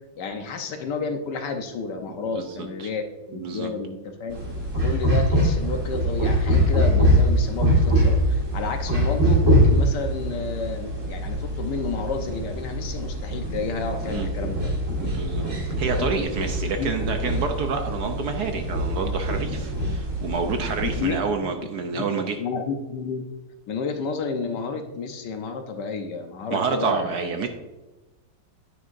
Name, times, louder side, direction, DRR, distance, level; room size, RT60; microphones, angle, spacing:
voice 1, 0.2-4.4 4.8-14.7 16.0-16.1 16.8-16.9 20.8-21.2 21.4-21.5 21.9-22.0 22.4-23.3 23.7-27.4, left 4 dB, 65° left, 5 dB, 1.3 m, -31 dB
voice 2, 2.4-2.9 3.3-3.7 14.1-14.3 15.0-22.4 26.5-27.5, right 5 dB, 65° right, 5 dB, 1.1 m, -28 dB
sound 1, 4.3-21.1, equal, 40° right, 2.3 m, -23 dB
9.5 x 9.2 x 2.6 m, 1.1 s
omnidirectional pair, 2.2 m